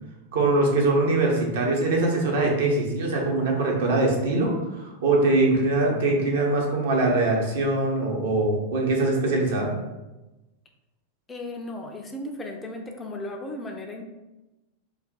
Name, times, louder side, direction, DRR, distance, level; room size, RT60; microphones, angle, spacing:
voice 1, 0.3-9.7, right 2 dB, 60° right, -1 dB, 0.7 m, -22 dB
voice 2, 11.3-14.0, left 1 dB, 15° left, 2 dB, 0.4 m, -35 dB
2.5 x 2.2 x 3.7 m, 1.0 s
figure-of-eight pair, 90°, 0 cm